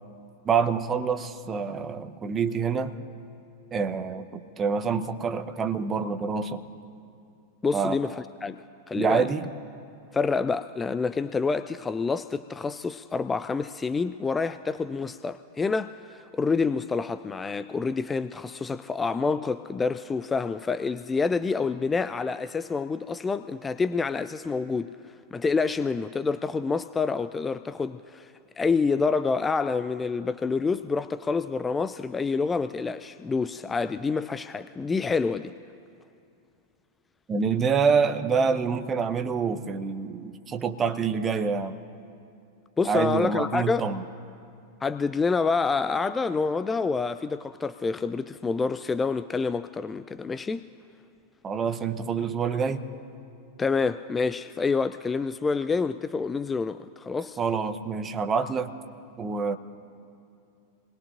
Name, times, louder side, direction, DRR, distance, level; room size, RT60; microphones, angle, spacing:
voice 1, 0.5-2.9 3.7-6.6 7.7-8.1 8.9-9.5 37.3-41.8 42.8-44.0 51.4-52.9 57.4-58.7 59.2-59.6, right 5 dB, 25° right, 8 dB, 0.8 m, -26 dB
voice 2, 7.6-8.6 8.9-9.3 10.1-24.9 25.3-35.5 42.8-43.9 44.8-50.6 53.6-57.4, left 4 dB, 15° left, 13 dB, 0.3 m, -27 dB
27.0 x 20.5 x 2.6 m, 2.5 s
figure-of-eight pair, 90°, 0 cm